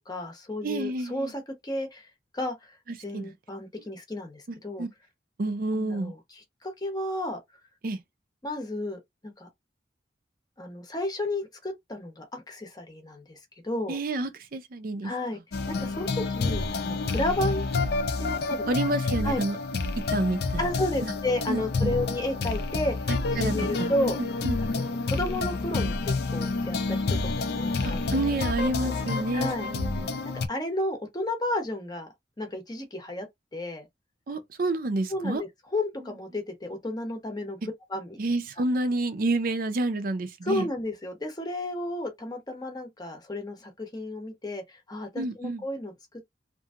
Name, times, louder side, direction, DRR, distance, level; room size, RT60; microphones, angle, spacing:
voice 1, 0.1-2.1 2.3-2.8 3.0-4.8 5.7-6.2 6.6-7.4 8.4-9.5 10.6-13.4 13.6-14.0 15.0-15.4 15.7-17.7 18.2-18.6 19.2-19.4 20.6-23.0 23.3-24.2 24.7-27.2 27.5-28.0 28.8-28.9 29.3-29.7 30.5-32.1 32.4-33.3 33.5-33.9 35.1-37.6 37.9-38.2 40.4-46.2, left 1 dB, 20° left, 0.8 m, -32 dB
voice 2, 0.6-1.3 3.1-3.3 4.5-4.9 5.4-6.1 7.8-8.0 13.9-15.1 18.7-19.6 20.1-20.7 21.0-21.1 21.5-21.9 23.1-23.5 23.8-23.9 24.2-24.6 27.8-30.1 34.3-35.4 38.2-40.7 45.1-45.6, right 2 dB, 50° right, 0.5 m, -29 dB
sound 1, 15.5-30.5, left 3 dB, 60° left, 0.5 m, -29 dB
2.8 x 2.6 x 2.4 m
head